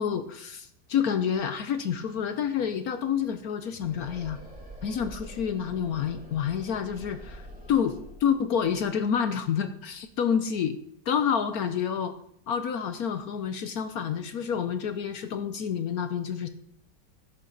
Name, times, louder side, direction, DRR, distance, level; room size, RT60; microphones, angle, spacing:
voice 1, 0.0-4.4 4.8-7.4 7.7-10.8 11.1-12.1 12.5-16.5, left 7 dB, 65° left, 9 dB, 1.1 m, -28 dB
sound 1, 1.7-10.4, right 1 dB, 5° right, 2.8 m, -47 dB
12.0 x 10.0 x 3.9 m, 0.70 s
omnidirectional pair, 1.9 m